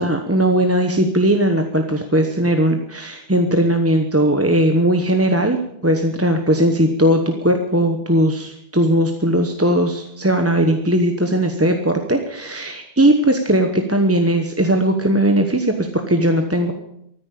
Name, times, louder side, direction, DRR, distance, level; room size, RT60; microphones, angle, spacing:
voice 1, 0.0-16.7, right 1 dB, 15° right, 4 dB, 1.0 m, -18 dB
14.5 x 9.6 x 8.5 m, 0.76 s
omnidirectional pair, 1.1 m